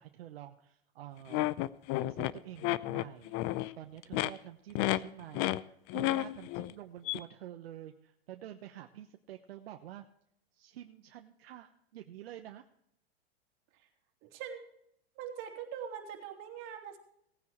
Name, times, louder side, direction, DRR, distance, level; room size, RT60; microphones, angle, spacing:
voice 1, 0.0-1.5 2.0-3.4 3.8-10.0 10.5-12.6, right 12 dB, 70° right, 5 dB, 1.0 m, -48 dB
sound 1, 1.3-3.7 4.0-4.3 4.8-5.0 5.3-5.6 5.9-6.7 7.1-7.2, left 17 dB, 40° left, 0.5 m, -31 dB
voice 2, 14.2-14.6 15.2-17.0, right 8 dB, 40° right, 1 dB, 3.0 m, -42 dB
18.5 x 9.5 x 3.1 m, 0.72 s
hypercardioid pair, 120°, 31 cm